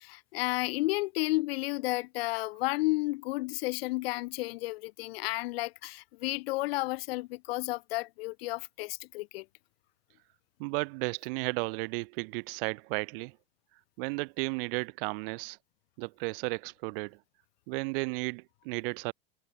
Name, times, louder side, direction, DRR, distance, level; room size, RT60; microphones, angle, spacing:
voice 1, 0.0-9.5, left 21 dB, 70° left, 0.5 m, -32 dB
voice 2, 10.6-13.3 14.0-15.6 16.0-17.2 17.7-19.1, right 30 dB, 55° right, 0.6 m, -34 dB
hypercardioid pair, 105°, 32 cm